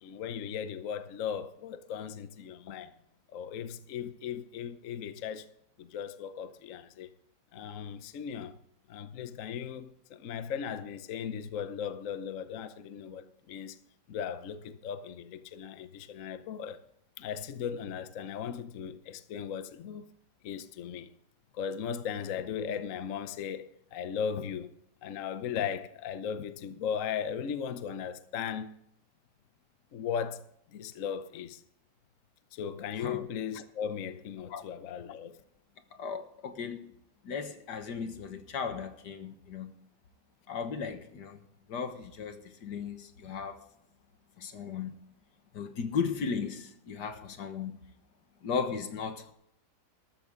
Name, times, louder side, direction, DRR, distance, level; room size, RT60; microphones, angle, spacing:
voice 1, 0.0-2.9 3.3-5.5 5.8-7.1 7.5-8.6 8.9-13.8 14.1-16.8 17.2-20.0 20.4-21.1 21.5-24.7 25.0-28.7 29.9-30.4 30.7-31.6 32.5-35.3, left 7 dB, 60° left, 1.0 m, -37 dB
voice 2, 36.0-36.9 37.3-39.7 40.5-41.4 41.7-43.6 44.4-45.0 45.5-47.8 48.4-49.3, left 6 dB, 75° left, 1.9 m, -36 dB
13.5 x 13.5 x 3.7 m
omnidirectional pair, 1.8 m